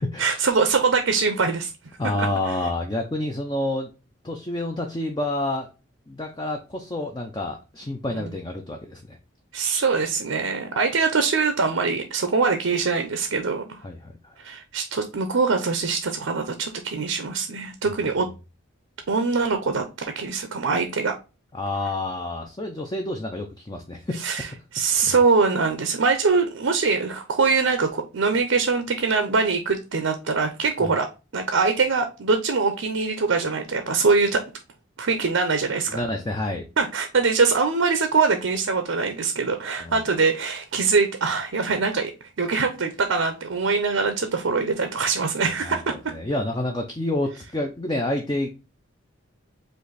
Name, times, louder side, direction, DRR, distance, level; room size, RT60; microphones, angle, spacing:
voice 1, 0.2-1.7 2.2-2.3 8.2-8.3 9.5-13.8 14.4-18.3 19.1-21.1 24.2-24.5 24.7-31.1 31.3-34.4 35.0-36.0 36.8-42.1 42.4-45.9, right 4 dB, 75° right, 7 dB, 0.6 m, -23 dB
voice 2, 2.0-3.9 4.2-5.7 6.1-9.2 13.8-14.3 21.5-24.3 24.9-25.2 30.8-30.9 35.9-36.7 39.8-40.0 45.6-48.5, left 1 dB, 20° left, 3 dB, 0.5 m, -29 dB
5.1 x 2.6 x 3.9 m, 0.29 s
head